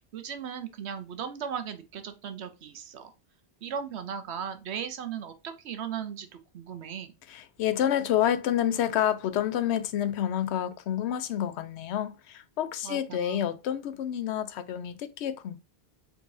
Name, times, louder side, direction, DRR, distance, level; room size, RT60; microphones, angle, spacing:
voice 1, 0.1-3.1 3.6-7.1 12.8-13.5, right 7 dB, 80° right, 1.0 m, -37 dB
voice 2, 7.3-15.6, left 10 dB, 85° left, 0.9 m, -28 dB
4.6 x 4.0 x 2.6 m
omnidirectional pair, 1.1 m